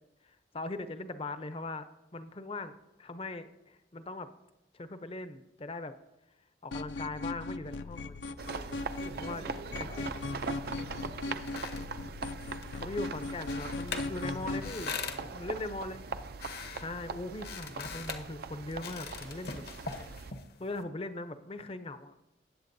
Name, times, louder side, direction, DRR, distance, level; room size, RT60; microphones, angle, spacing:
voice 1, 0.2-4.3 4.7-5.9 6.6-8.8 9.2-9.4 9.8-9.9 12.8-14.9 15.2-16.1 16.8-20.0 20.6-22.1, left 2 dB, 30° left, 11 dB, 0.6 m, -40 dB
sound 1, 6.7-14.7, left 3 dB, 75° left, 0.4 m, -39 dB
sound 2, 8.4-20.3, right 4 dB, 55° right, 0.4 m, -42 dB
voice 2, 8.9-11.8 14.3-16.2, right 1 dB, 85° right, 0 dB, 3.4 m, -51 dB
sound 3, 11.1-20.8, left 5 dB, 55° left, 0.9 m, -43 dB
18.5 x 7.9 x 2.7 m, 0.94 s
head